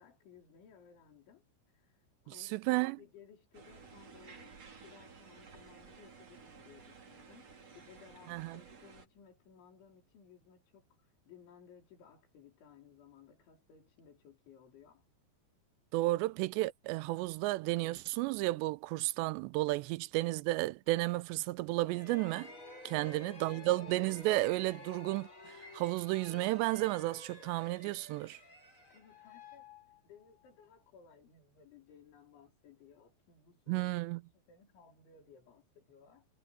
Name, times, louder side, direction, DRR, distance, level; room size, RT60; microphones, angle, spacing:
voice 1, 0.0-15.1 19.8-20.0 22.9-23.8 28.9-29.7 30.0-34.0 34.3-36.3, left 7 dB, 85° left, 6.8 m, -60 dB
voice 2, 2.4-3.0 8.3-8.6 15.9-22.5 22.9-28.4 33.7-34.2, right 19 dB, 85° right, 2.6 m, -33 dB
sound 1, 3.5-9.1, right 5 dB, 35° right, 4.1 m, -55 dB
sound 2, 21.8-30.5, left 2 dB, 25° left, 7.2 m, -52 dB
omnidirectional pair, 5.2 m